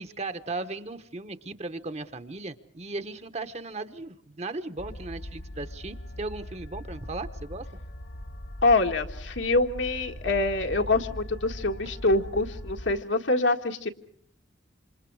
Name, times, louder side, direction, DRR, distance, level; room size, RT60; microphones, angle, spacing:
voice 1, 0.0-7.7, right 3 dB, 35° right, 11 dB, 1.1 m, -37 dB
sound 1, 4.8-13.0, left 1 dB, 60° left, 1.6 m, -40 dB
voice 2, 8.6-13.9, left 2 dB, 75° left, 4 dB, 1.8 m, -25 dB
27.5 x 27.0 x 4.8 m, 0.64 s
head